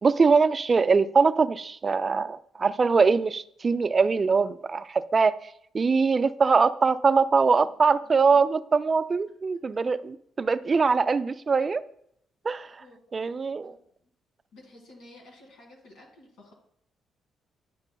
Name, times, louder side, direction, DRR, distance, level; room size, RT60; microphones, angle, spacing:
voice 1, 0.0-5.5 5.7-11.8 12.4-12.7 13.1-13.7, right 4 dB, 35° right, 13 dB, 0.3 m, -22 dB
voice 2, 12.8-13.8 14.5-16.5, left 1 dB, 90° left, 0 dB, 2.1 m, -53 dB
9.7 x 5.4 x 2.2 m, 0.71 s
cardioid pair, 90°, 0 cm